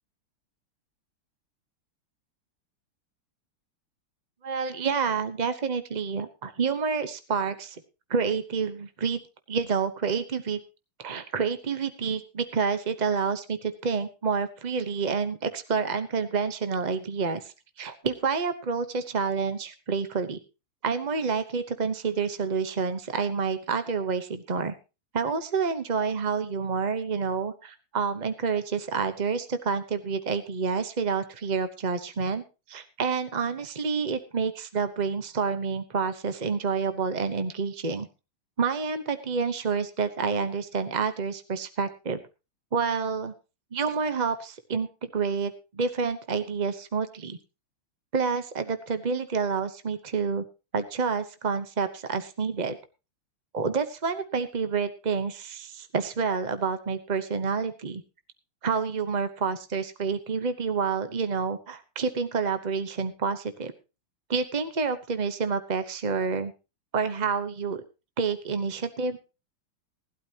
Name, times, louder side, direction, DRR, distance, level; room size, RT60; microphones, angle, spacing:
voice 1, 4.4-7.8 8.1-9.2 9.5-10.6 11.0-20.4 20.8-24.7 25.1-38.1 38.6-42.2 42.7-43.3 43.7-47.4 48.1-50.4 50.7-52.8 53.5-58.0 58.6-63.7 64.3-66.5 66.9-67.8 68.2-69.2, right 5 dB, 50° right, 10 dB, 0.5 m, -28 dB
19.0 x 12.0 x 2.9 m, 0.29 s
omnidirectional pair, 2.3 m